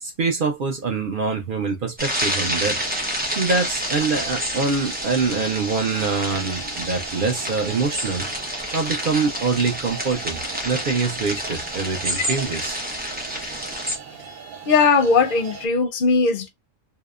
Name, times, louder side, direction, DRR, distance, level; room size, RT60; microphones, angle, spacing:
voice 1, 0.0-2.8 3.4-8.3 8.7-12.8, right 4 dB, 55° right, 0.6 m, -24 dB
sound 1, 2.0-14.0, equal, 10° right, 0.4 m, -29 dB
sound 2, 2.7-15.7, right 6 dB, 80° right, 1.1 m, -40 dB
voice 2, 14.7-16.5, left 4 dB, 50° left, 0.6 m, -18 dB
2.7 x 2.0 x 2.3 m
omnidirectional pair, 1.4 m